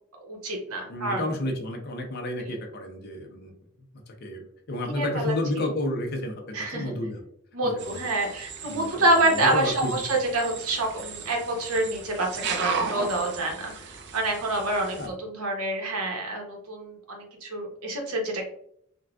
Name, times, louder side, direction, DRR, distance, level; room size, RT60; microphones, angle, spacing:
voice 1, 0.2-1.2 4.9-5.3 6.5-6.9 7.5-18.5, right 1 dB, 80° right, 1 dB, 0.9 m, -27 dB
voice 2, 0.9-3.5 4.1-7.2 7.6-8.0 8.6-9.9 15.0-15.1, left 1 dB, 45° left, 2 dB, 0.6 m, -31 dB
sound 1, 7.8-15.1, right 5 dB, 50° right, 0.4 m, -36 dB
3.9 x 2.2 x 2.3 m, 0.68 s
head